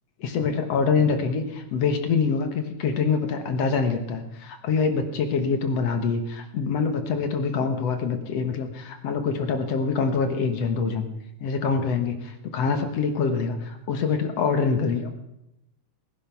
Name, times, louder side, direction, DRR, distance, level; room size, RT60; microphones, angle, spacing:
voice 1, 0.2-11.1 11.4-15.1, left 5 dB, 60° left, 6 dB, 2.1 m, -25 dB
19.0 x 10.5 x 5.9 m, 0.86 s
omnidirectional pair, 3.8 m